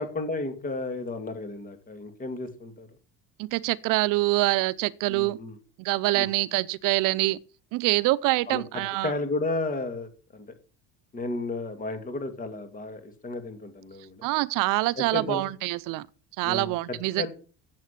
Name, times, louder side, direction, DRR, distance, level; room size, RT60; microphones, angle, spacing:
voice 1, 0.0-2.9 5.1-5.5 6.1-6.3 8.5-8.6 9.0-10.5 11.1-14.3 15.0-15.4 16.4-17.3, left 2 dB, 25° left, 2.4 m, -33 dB
voice 2, 3.4-5.4 5.8-7.4 7.7-9.1 14.2-16.1 16.4-17.3, right 20 dB, 70° right, 0.6 m, -25 dB
15.0 x 7.4 x 5.8 m
cardioid pair, 145°, 33 cm